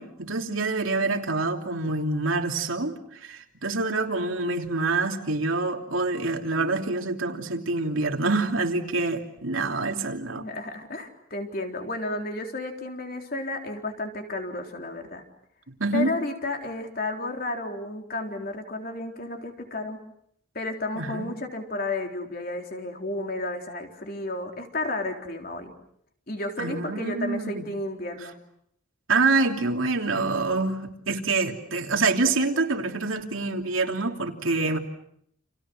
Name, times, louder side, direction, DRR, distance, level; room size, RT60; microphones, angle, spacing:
voice 1, 0.0-10.5 15.8-16.1 20.9-21.3 26.6-27.6 29.1-34.8, right 3 dB, 85° right, 3.1 m, -26 dB
voice 2, 10.3-15.2 15.9-20.0 20.5-25.7 26.3-28.4, left 2 dB, 45° left, 3.7 m, -32 dB
30.0 x 29.0 x 6.2 m
head